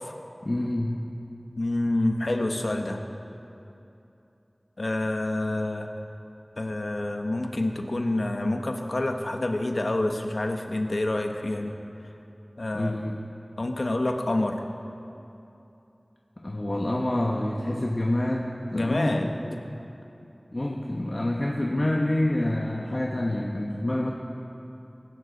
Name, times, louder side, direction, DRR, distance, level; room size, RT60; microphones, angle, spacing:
voice 1, 0.4-1.1 12.7-13.2 16.4-19.2 19.4-19.8 20.5-24.1, left 1 dB, 55° left, -1 dB, 1.1 m, -27 dB
voice 2, 1.6-3.0 4.8-5.9 6.6-11.8 12.6-13.0 13.6-14.6 18.7-19.3, left 1 dB, 85° left, 4 dB, 1.0 m, -27 dB
21.0 x 11.0 x 4.0 m, 2.8 s
wide cardioid pair, 45°, 0 cm